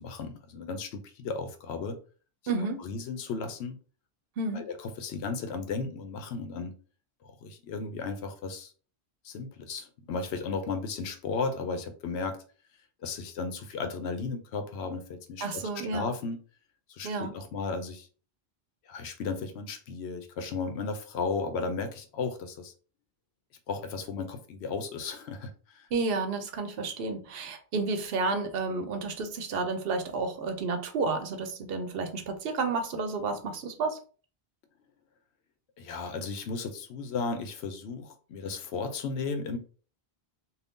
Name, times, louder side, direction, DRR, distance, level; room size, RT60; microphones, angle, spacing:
voice 1, 0.0-2.0 2.8-3.8 4.5-6.8 7.4-8.7 9.2-12.4 13.0-16.4 16.9-18.1 18.9-22.7 23.7-25.9 35.8-39.6, left 4 dB, 90° left, 0.9 m, -35 dB
voice 2, 2.5-2.8 4.4-4.7 15.4-16.1 17.0-17.3 25.9-34.0, right 3 dB, 70° right, 0.8 m, -31 dB
2.6 x 2.3 x 3.5 m
omnidirectional pair, 1.1 m